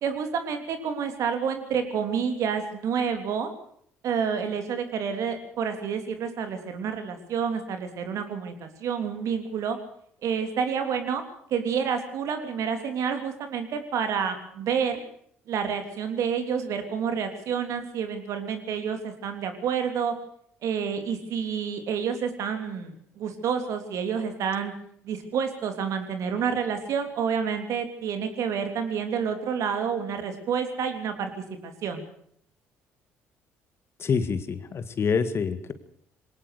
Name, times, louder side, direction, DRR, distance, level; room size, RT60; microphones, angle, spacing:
voice 1, 0.0-3.5 4.0-9.8 10.2-11.2 11.5-15.0 15.5-20.1 20.6-24.7 25.0-31.3 31.6-32.1, right 7 dB, 60° right, 6 dB, 3.3 m, -29 dB
voice 2, 34.0-35.7, left 5 dB, 45° left, 11 dB, 1.9 m, -26 dB
21.0 x 18.5 x 6.7 m, 0.65 s
hypercardioid pair, 55°, 6 cm